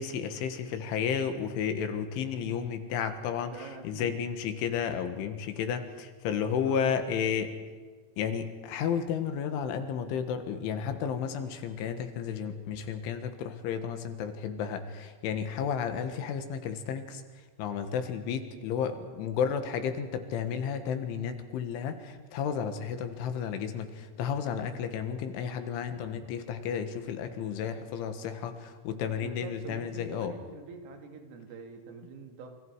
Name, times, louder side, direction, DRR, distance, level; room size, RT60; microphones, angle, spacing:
voice 1, 0.0-7.5 8.2-17.2 17.6-30.3, left 7 dB, 75° left, 8 dB, 3.9 m, -32 dB
voice 2, 3.5-4.1 6.6-6.8 29.1-32.6, right 4 dB, 80° right, 4 dB, 5.0 m, -46 dB
28.5 x 28.0 x 4.9 m, 1.5 s
omnidirectional pair, 5.9 m